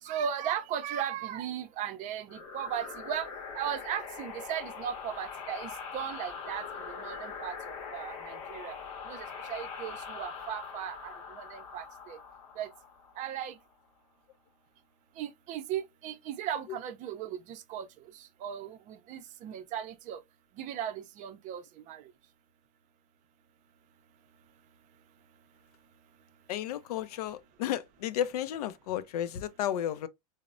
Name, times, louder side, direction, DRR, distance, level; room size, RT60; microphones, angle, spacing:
voice 1, 0.0-3.3 3.5-8.8 9.0-12.2 12.5-12.7 13.1-13.6 15.1-20.2 20.5-22.1, right 9 dB, 40° right, 0.5 m, -37 dB
sound 1, 2.3-13.6, left 6 dB, 65° left, 0.8 m, -42 dB
voice 2, 26.5-30.1, left 11 dB, 80° left, 0.4 m, -33 dB
2.9 x 2.0 x 2.3 m
supercardioid pair, 120°, 19 cm